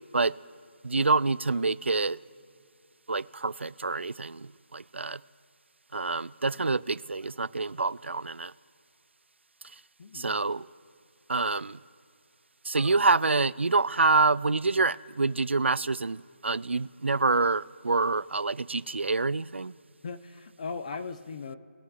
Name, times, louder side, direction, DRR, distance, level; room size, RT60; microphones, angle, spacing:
voice 1, 0.8-2.2 3.1-5.2 5.9-8.5 10.1-10.7 11.3-11.8 12.6-19.7, right 3 dB, 90° right, 18 dB, 0.4 m, -27 dB
voice 2, 10.0-10.4 20.0-21.6, left 4 dB, 35° left, 10 dB, 0.6 m, -38 dB
21.5 x 7.6 x 2.4 m, 2.4 s
figure-of-eight pair, 160°, 6 cm